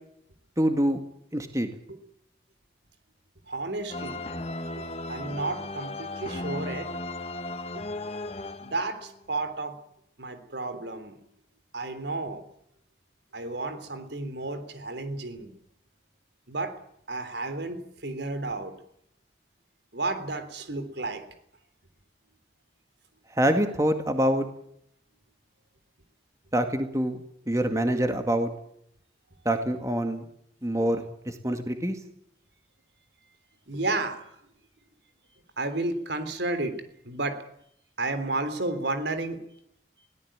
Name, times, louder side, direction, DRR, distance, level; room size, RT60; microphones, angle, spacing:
voice 1, 0.6-1.0 1.3-1.7 23.4-24.5 26.5-27.2 27.5-28.5 29.5-30.2 30.6-32.0, right 1 dB, 15° right, 6 dB, 2.1 m, -25 dB
voice 2, 3.5-4.2 4.8-6.9 7.8-7.9 8.6-9.8 10.2-11.2 11.7-12.4 13.3-15.5 16.5-16.8 17.1-18.7 19.9-21.2 30.8-30.9 33.7-34.3 35.6-36.8 37.0-37.4 38.0-39.4, right 2 dB, 75° right, 10 dB, 3.5 m, -32 dB
sound 1, 3.9-9.2, left 2 dB, 35° left, 1.4 m, -36 dB
22.0 x 17.5 x 8.9 m, 0.72 s
head